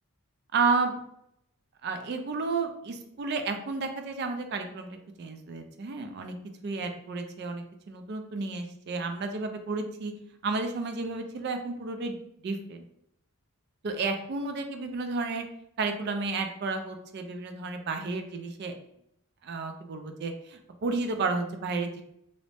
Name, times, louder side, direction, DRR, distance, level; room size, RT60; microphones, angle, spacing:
voice 1, 0.5-1.0 1.8-4.9 5.2-6.3 6.6-10.1 10.4-12.2 12.4-12.8 13.8-15.4 15.8-18.7 19.4-22.0, right 4 dB, 45° right, 6 dB, 0.3 m, -32 dB
2.6 x 2.0 x 3.2 m, 0.76 s
head